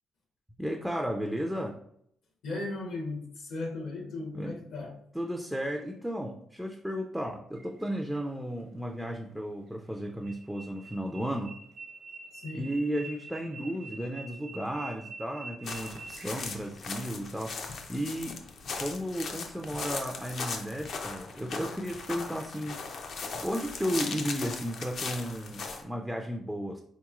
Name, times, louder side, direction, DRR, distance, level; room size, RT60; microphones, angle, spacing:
voice 1, 0.6-1.8 4.3-4.6 5.1-11.6 12.5-18.4 18.8-22.8 23.4-26.8, equal, 5° right, 2 dB, 0.3 m, -34 dB
voice 2, 2.4-4.9 12.3-12.7, left 2 dB, 75° left, 1 dB, 0.9 m, -36 dB
sound 1, 7.6-8.2 9.9-16.9, right 3 dB, 60° right, 0.8 m, -46 dB
sound 2, 15.6-25.8, left 4 dB, 60° left, 0.5 m, -38 dB
3.6 x 2.9 x 2.3 m, 0.69 s
cardioid pair, 90°, 0 cm